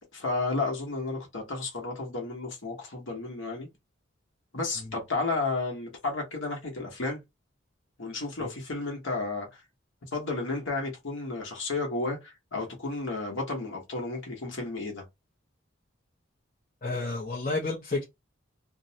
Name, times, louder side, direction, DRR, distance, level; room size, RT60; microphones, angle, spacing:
voice 1, 0.1-3.7 4.5-7.2 8.0-9.6 10.1-15.0, left 3 dB, 70° left, 0.9 m, -32 dB
voice 2, 16.8-18.0, left 3 dB, 40° left, 0.6 m, -30 dB
2.6 x 2.0 x 2.7 m
head